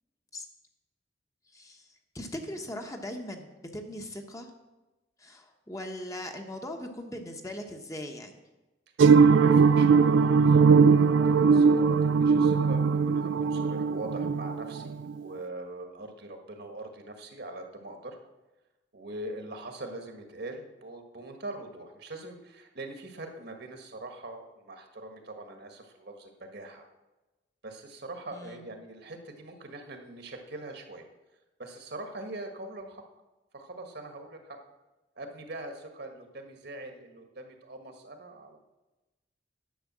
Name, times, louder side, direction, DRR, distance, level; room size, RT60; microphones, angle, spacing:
voice 1, 1.5-1.9 2.1-4.5 5.2-8.3 28.3-28.6, left 1 dB, 20° left, 4 dB, 1.0 m, -39 dB
sound 1, 9.0-15.2, right 5 dB, 85° right, 0.4 m, -20 dB
voice 2, 9.1-10.6 10.9-18.2 18.9-26.9 27.6-31.0 31.6-33.0 33.5-34.6 35.2-38.6, right 2 dB, 60° right, 4 dB, 1.5 m, -42 dB
10.5 x 6.5 x 7.3 m, 1.1 s
head